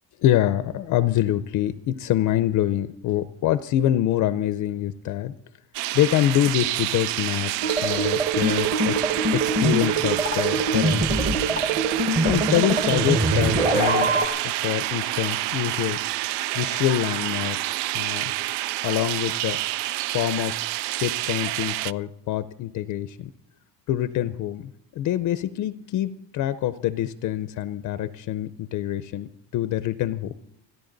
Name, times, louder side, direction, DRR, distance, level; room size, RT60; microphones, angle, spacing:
voice 1, 0.2-5.3 5.9-11.1 12.1-14.1 14.6-16.0 16.5-17.6 17.9-18.3 18.8-19.6 20.1-23.3 23.9-30.3, left 12 dB, 45° left, 13 dB, 0.5 m, -25 dB
sound 1, 5.7-21.9, right 16 dB, 90° right, 0.5 m, -28 dB
sound 2, 7.6-14.3, right 2 dB, 20° right, 1.3 m, -23 dB
29.0 x 11.0 x 3.9 m, 0.80 s
cardioid pair, 175°, 40 cm